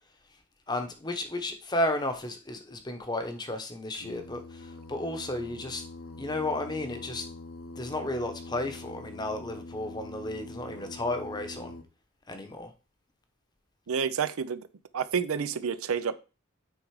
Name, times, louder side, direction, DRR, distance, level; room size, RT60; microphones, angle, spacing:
voice 1, 0.7-5.8 6.2-7.3 7.7-11.7 12.3-12.7, left 1 dB, 20° left, 6 dB, 0.9 m, -33 dB
Singing, 3.9-11.8, left 2 dB, 80° left, 1.2 m, -44 dB
voice 2, 13.9-14.7 14.9-16.2, right 6 dB, 75° right, 14 dB, 0.5 m, -29 dB
9.2 x 3.7 x 4.8 m, 0.33 s
head